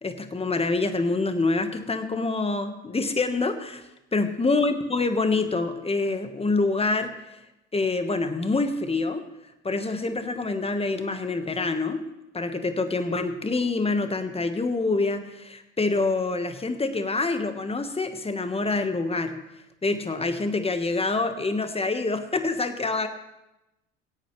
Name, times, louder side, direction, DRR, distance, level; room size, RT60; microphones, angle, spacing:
voice 1, 0.0-3.8 4.1-7.1 7.7-9.2 9.6-12.0 12.3-19.4 19.8-23.1, left 3 dB, 15° left, 8 dB, 1.4 m, -26 dB
24.0 x 8.4 x 3.3 m, 0.92 s
hypercardioid pair, 60°, 36 cm